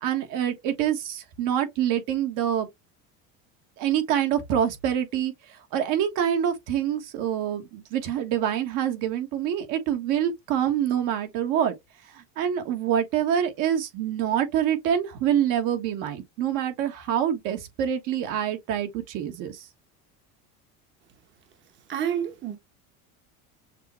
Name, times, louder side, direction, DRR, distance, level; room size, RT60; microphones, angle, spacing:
voice 1, 0.0-2.7 3.8-11.7 12.1-19.6, right 9 dB, 65° right, 1.3 m, -26 dB
voice 2, 21.9-22.6, right 9 dB, 35° right, 0.9 m, -28 dB
6.6 x 2.2 x 3.0 m
cardioid pair, 135°, 35 cm